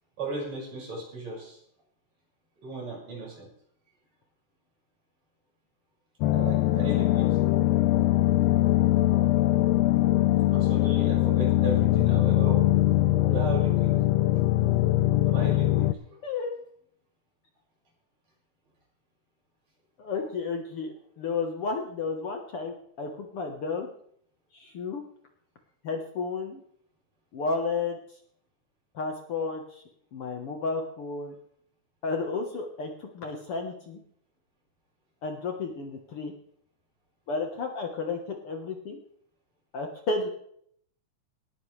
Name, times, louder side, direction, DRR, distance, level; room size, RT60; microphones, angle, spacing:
voice 1, 0.2-1.6 2.6-3.5 6.3-7.3 10.5-12.7 13.3-13.9 15.2-16.2, right 3 dB, 60° right, -3 dB, 7.0 m, -36 dB
sound 1, 6.2-15.9, left 15 dB, 75° left, 1.5 m, -22 dB
voice 2, 16.2-16.6 20.0-23.9 24.5-25.0 25.8-26.6 27.3-28.0 29.0-29.8 30.1-31.4 32.0-34.0 35.2-36.3 37.3-39.0 39.7-40.3, left 4 dB, 55° left, 3 dB, 2.0 m, -32 dB
19.0 x 13.5 x 3.3 m, 0.66 s
omnidirectional pair, 3.5 m